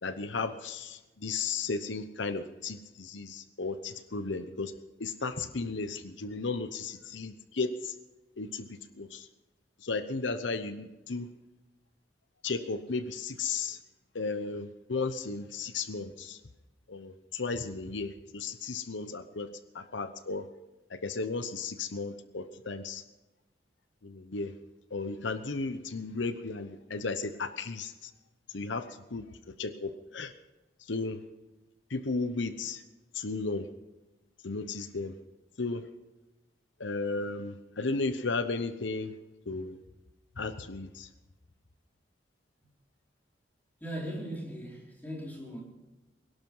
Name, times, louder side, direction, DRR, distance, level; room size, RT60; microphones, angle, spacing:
voice 1, 0.0-4.7 5.0-7.9 8.4-9.3 9.8-11.3 12.4-13.8 14.1-16.4 16.9-19.5 19.7-20.5 20.9-23.0 24.0-24.5 24.9-28.1 28.5-29.3 29.6-30.3 30.8-31.2 31.9-32.8 33.1-33.7 34.4-35.1 35.6-35.9 36.8-39.1 39.5-39.8 40.4-41.1, left 3 dB, 85° left, 11 dB, 0.9 m, -34 dB
voice 2, 43.8-45.6, equal, 10° left, -3 dB, 4.5 m, -38 dB
22.0 x 11.5 x 5.5 m, 1.1 s
head